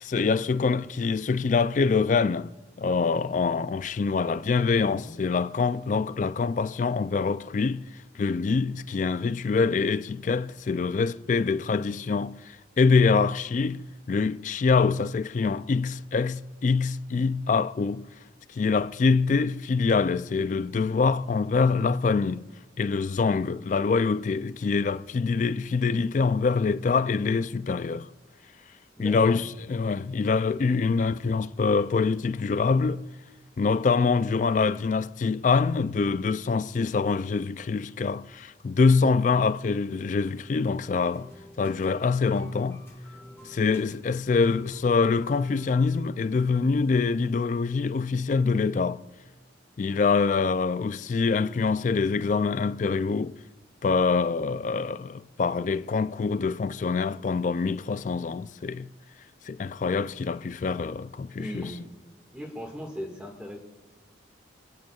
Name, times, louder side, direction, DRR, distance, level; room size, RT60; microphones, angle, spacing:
voice 1, 0.0-2.5 2.8-7.9 8.2-18.1 18.5-22.5 22.8-28.1 29.0-33.0 33.6-41.3 41.6-42.8 43.5-49.0 49.8-53.4 53.8-58.9 59.5-61.7, left 4 dB, 40° left, 0.3 m, -25 dB
voice 2, 4.7-5.1 29.0-29.4 61.4-61.9 62.3-63.6, equal, 5° right, 1.7 m, -38 dB
sound 1, 41.1-46.6, left 1 dB, 15° left, 1.9 m, -49 dB
29.5 x 10.5 x 2.4 m
head